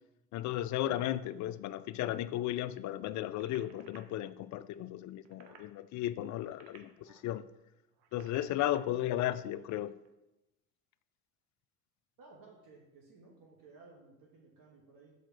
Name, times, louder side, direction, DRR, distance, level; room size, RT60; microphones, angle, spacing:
voice 1, 0.3-7.4 8.1-9.9, left 13 dB, 50° left, 0.4 m, -35 dB
sound 1, 3.3-4.0 5.1-5.7 6.3-7.3 7.9-8.8 10.0-10.1, right 8 dB, 75° right, 0.9 m, -58 dB
voice 2, 12.2-15.1, right 3 dB, 55° right, 1.4 m, -57 dB
5.2 x 4.2 x 5.1 m
hypercardioid pair, 70°, 39 cm